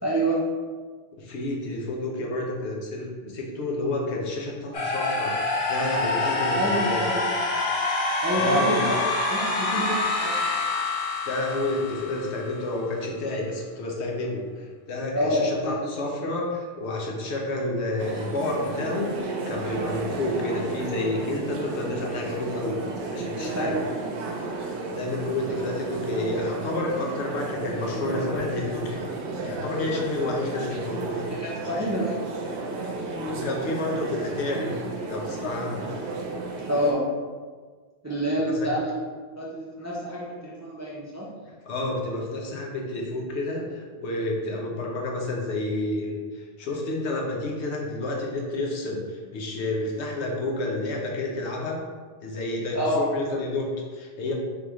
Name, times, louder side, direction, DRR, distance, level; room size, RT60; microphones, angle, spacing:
voice 1, 0.0-0.4 6.5-7.3 8.2-9.0 9.3-10.5 15.1-15.8 23.5-23.8 31.3-32.2 32.7-32.9 36.7-37.1 38.0-38.9 39.3-41.3 52.7-53.1, equal, 25° right, -5 dB, 0.3 m, -27 dB
voice 2, 1.1-7.1 8.4-9.0 11.2-23.8 24.9-29.0 29.4-31.2 31.7-31.9 33.3-34.7 35.1-35.9 38.5-38.7 41.4-51.8 52.2-54.3, left 2 dB, 80° left, -1 dB, 1.0 m, -30 dB
sound 1, 4.7-12.7, left 2 dB, 45° left, 0.5 m, -26 dB
sound 2, 18.0-36.9, right 3 dB, 85° right, 0.9 m, -33 dB
3.5 x 3.4 x 3.0 m, 1.5 s
omnidirectional pair, 1.1 m